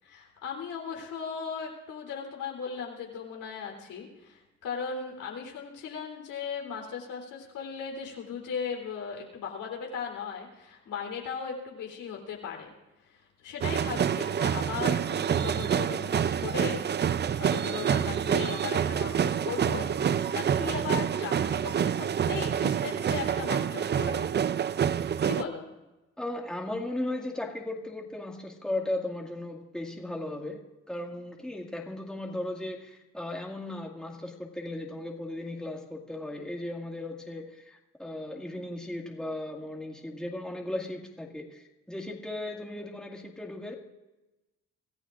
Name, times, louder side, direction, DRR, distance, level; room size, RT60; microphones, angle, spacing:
voice 1, 0.0-12.7 13.0-16.8 17.4-21.7 22.0-24.4 25.2-25.7, left 6 dB, 80° left, 0 dB, 3.6 m, -37 dB
sound 1, 13.6-25.4, right 8 dB, 35° right, 0.5 m, -27 dB
voice 2, 26.2-30.6 30.9-43.7, left 1 dB, ahead, 0 dB, 2.0 m, -36 dB
26.0 x 14.0 x 2.5 m, 1.0 s
cardioid pair, 90°, 30 cm